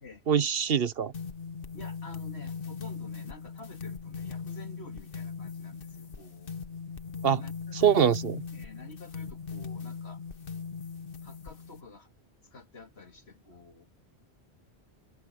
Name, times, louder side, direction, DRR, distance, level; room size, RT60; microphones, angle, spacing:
voice 1, 0.3-1.1 7.2-7.4 7.8-8.4, right 8 dB, 65° right, 1.1 m, -23 dB
sound 1, 1.1-11.8, left 5 dB, 60° left, 1.4 m, -39 dB
voice 2, 1.7-6.5 7.3-8.1 8.5-10.2 11.2-12.1 12.5-13.9, left 3 dB, 75° left, 3.1 m, -49 dB
omnidirectional pair, 1.1 m